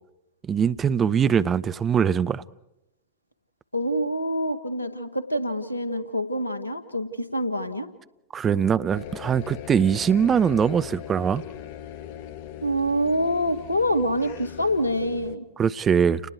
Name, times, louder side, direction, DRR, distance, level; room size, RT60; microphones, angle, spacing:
voice 1, 0.4-2.4 8.3-11.4 15.6-16.2, right 7 dB, 25° right, 0.7 m, -22 dB
voice 2, 3.7-7.9 12.6-15.5, equal, 85° left, 1.8 m, -26 dB
sound 1, 8.9-15.4, left 10 dB, 50° left, 1.1 m, -40 dB
30.0 x 20.0 x 4.7 m
figure-of-eight pair, 90°, 0 cm